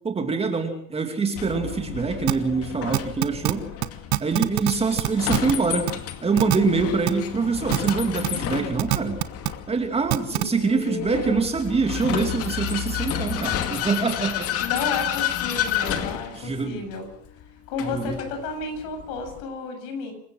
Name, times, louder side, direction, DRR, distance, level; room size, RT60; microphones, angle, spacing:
voice 1, 0.0-3.7 4.2-5.9 6.2-9.2 9.7-14.5 16.3-16.8 17.8-18.2, right 4 dB, 15° right, 4 dB, 2.6 m, -25 dB
Vehicle, 1.4-19.4, left 10 dB, 40° left, 2.3 m, -31 dB
sound 1, 2.3-2.4 2.9-3.5 3.8-3.9 4.1-4.7 5.0-5.5 5.9-6.0 6.4-6.6 7.1-7.2 7.7-7.9 8.2-8.3 8.8-9.5 10.1-10.4, right 22 dB, 60° right, 1.3 m, -22 dB
voice 2, 10.3-11.5 14.6-17.1 17.7-20.1, left 4 dB, 55° left, 6 dB, 7.9 m, -32 dB
27.5 x 15.5 x 6.4 m, 0.64 s
supercardioid pair, 140°, 38 cm